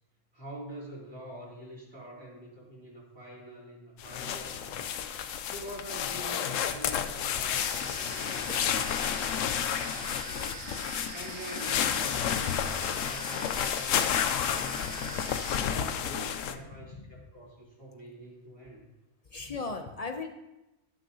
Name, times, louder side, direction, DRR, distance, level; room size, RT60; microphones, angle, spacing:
voice 1, 0.3-4.8 5.5-15.3 15.7-18.8, right 1 dB, 15° right, -7 dB, 3.7 m, -46 dB
sound 1, 4.0-16.6, left 8 dB, 70° left, 0.9 m, -31 dB
sound 2, 7.6-15.6, right 6 dB, 90° right, 1.2 m, -44 dB
voice 2, 8.3-9.4 11.9-12.0 16.0-16.1 16.7-17.1 19.3-20.3, left 3 dB, 45° left, 5 dB, 0.5 m, -40 dB
16.5 x 6.4 x 2.8 m, 0.95 s
omnidirectional pair, 1.6 m